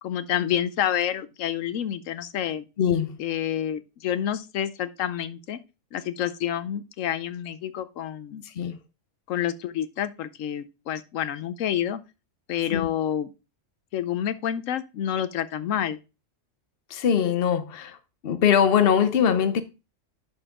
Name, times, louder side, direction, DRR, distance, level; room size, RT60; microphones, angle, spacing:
voice 1, 0.0-2.7 3.2-5.6 5.9-8.4 9.3-12.0 12.5-13.3 13.9-16.0, left 10 dB, 90° left, 1.1 m, -28 dB
voice 2, 2.8-3.2 8.5-8.8 12.7-12.9 16.9-18.0 18.2-19.6, left 8 dB, 55° left, 1.0 m, -22 dB
11.0 x 4.5 x 3.7 m
omnidirectional pair, 1.3 m